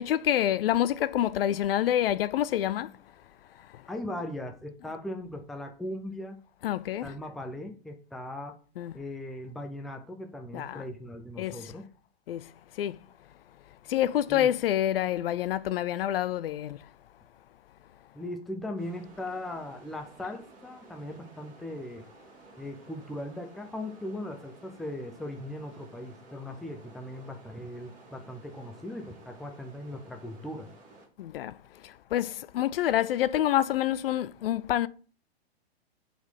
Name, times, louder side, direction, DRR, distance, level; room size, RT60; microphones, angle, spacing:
voice 1, 0.0-2.9 3.6-3.9 6.6-7.1 8.8-8.9 10.5-10.8 11.4-11.7 12.3-13.0 13.9-16.9 31.2-34.9, left 12 dB, 65° left, 0.4 m, -28 dB
voice 2, 3.9-6.4 7.0-8.5 8.9-11.9 14.3-14.5 18.1-22.0 22.6-30.7, left 1 dB, ahead, 0.4 m, -39 dB
sound 1, 18.8-31.1, right 2 dB, 25° right, 2.0 m, -54 dB
4.2 x 4.2 x 5.6 m
hypercardioid pair, 120°, 32 cm